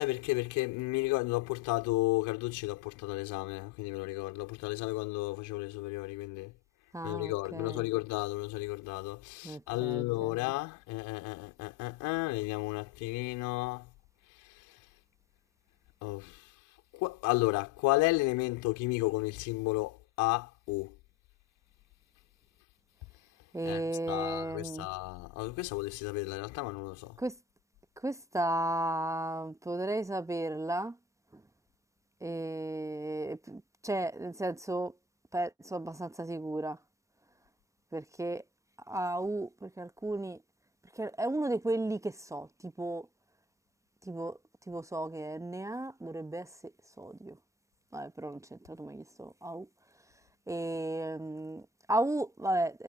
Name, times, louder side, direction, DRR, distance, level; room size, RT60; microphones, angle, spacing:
voice 1, 0.0-6.5 7.0-13.9 14.4-14.8 16.0-16.5 16.9-20.9 23.6-27.2, left 22 dB, 65° left, 4.3 m, -33 dB
voice 2, 6.9-7.8 9.4-10.4 23.5-24.9 27.2-27.3 28.0-31.0 32.2-34.9 35.3-36.8 37.9-38.4 38.9-40.4 40.9-43.1 44.0-44.4 44.7-46.7 47.0-47.4 47.9-49.7 50.5-52.8, right 1 dB, 10° right, 1.0 m, -34 dB
figure-of-eight pair, 55°, 33 cm